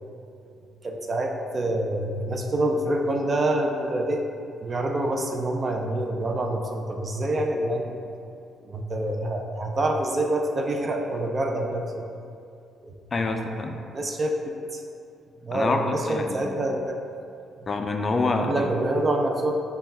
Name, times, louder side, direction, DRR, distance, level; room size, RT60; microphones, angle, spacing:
voice 1, 0.8-4.3 4.6-8.0 8.6-12.1 12.8-12.9 13.9-14.8 15.4-17.0 18.4-19.6, right 1 dB, 35° right, 2 dB, 0.5 m, -26 dB
voice 2, 13.1-13.8 15.5-16.5 17.7-18.7, left 3 dB, 35° left, 4 dB, 0.4 m, -26 dB
5.5 x 2.3 x 4.2 m, 2.5 s
cardioid pair, 90°, 0 cm